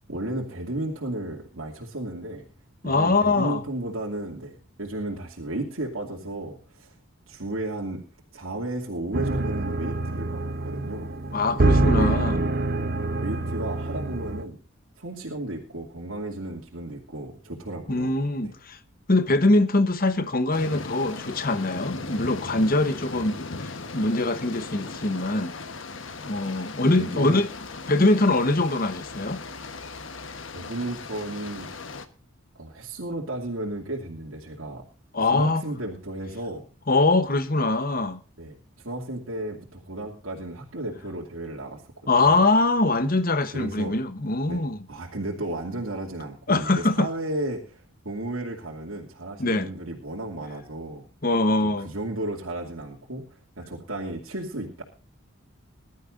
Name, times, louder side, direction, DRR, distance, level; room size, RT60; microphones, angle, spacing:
voice 1, 0.1-2.4 2.8-6.9 7.3-8.0 8.3-11.1 11.7-12.2 13.2-14.6 15.0-18.2 18.4-18.5 26.9-27.4 30.5-31.7 32.6-34.8 35.2-36.6 38.4-41.8 42.2-42.4 43.5-43.9 44.4-44.6 44.9-51.0 51.6-54.8, right 1 dB, 80° right, 2.7 m, -34 dB
voice 2, 2.8-3.6 11.3-12.4 17.9-18.8 19.1-25.6 26.3-27.5 27.9-29.4 35.1-35.6 36.9-38.2 42.1-44.8 46.5-47.1 49.4-49.7 51.2-51.9, left 2 dB, 45° left, 1.0 m, -23 dB
sound 1, 9.1-14.4, right 2 dB, 45° right, 0.9 m, -25 dB
sound 2, 20.5-32.0, left 3 dB, 65° left, 1.2 m, -38 dB
21.5 x 12.5 x 2.6 m
head